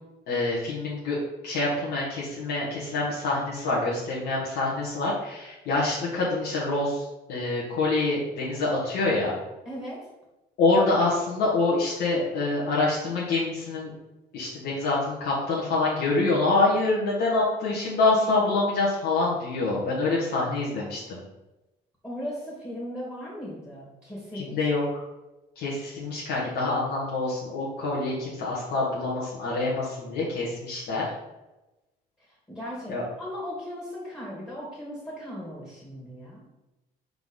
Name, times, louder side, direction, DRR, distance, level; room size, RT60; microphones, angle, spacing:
voice 1, 0.3-1.2 1.4-9.3 10.6-13.9 14.3-21.2 24.3-25.0 25.6-31.1 32.9-33.0, left 3 dB, 80° left, -6 dB, 1.7 m, -26 dB
voice 2, 9.6-10.0 22.0-24.6 32.5-36.4, equal, 10° left, -6 dB, 2.2 m, -37 dB
4.6 x 4.0 x 5.5 m, 1.0 s
cardioid pair, 110°, 17 cm